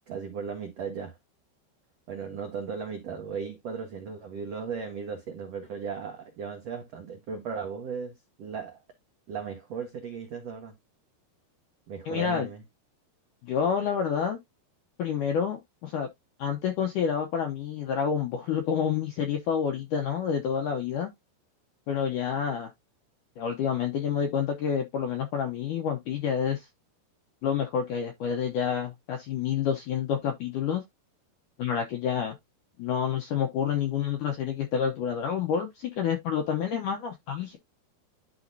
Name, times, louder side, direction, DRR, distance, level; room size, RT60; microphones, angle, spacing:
voice 1, 0.1-1.2 2.1-8.8 9.3-10.7 11.9-12.6, right 6 dB, 85° right, 1.4 m, -36 dB
voice 2, 12.1-12.5 13.4-14.4 15.0-16.1 16.4-21.1 21.9-22.7 23.4-26.7 27.4-30.8 31.6-32.4 32.8-37.6, left 7 dB, 80° left, 1.8 m, -28 dB
11.5 x 4.0 x 2.7 m
omnidirectional pair, 4.8 m